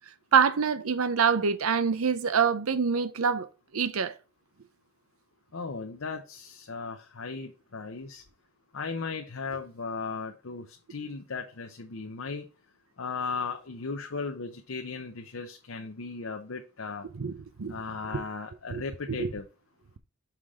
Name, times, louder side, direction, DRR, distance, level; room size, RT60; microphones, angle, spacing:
voice 1, 0.3-3.5 3.7-4.1 17.1-17.7 18.1-18.2 18.7-18.8 19.1-19.3, right 6 dB, 90° right, 0.6 m, -25 dB
voice 2, 5.5-8.2 8.7-12.5 13.0-17.1 17.7-19.5, left 4 dB, 75° left, 0.8 m, -36 dB
5.9 x 5.0 x 3.6 m
head